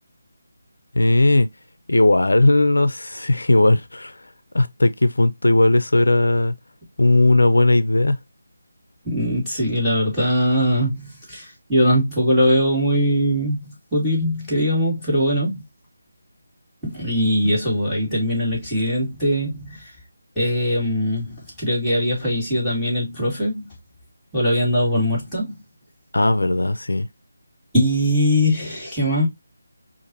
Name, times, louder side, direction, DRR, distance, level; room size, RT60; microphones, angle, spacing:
voice 1, 1.0-1.5 1.9-4.2 4.5-6.5 7.0-8.2 26.1-27.1, left 2 dB, 90° left, 0.4 m, -17 dB
voice 2, 9.0-15.6 16.8-19.9 20.4-23.7 24.3-25.6 27.7-29.3, equal, ahead, 2.2 m, -21 dB
5.1 x 2.5 x 2.7 m
figure-of-eight pair, 165°, 0 cm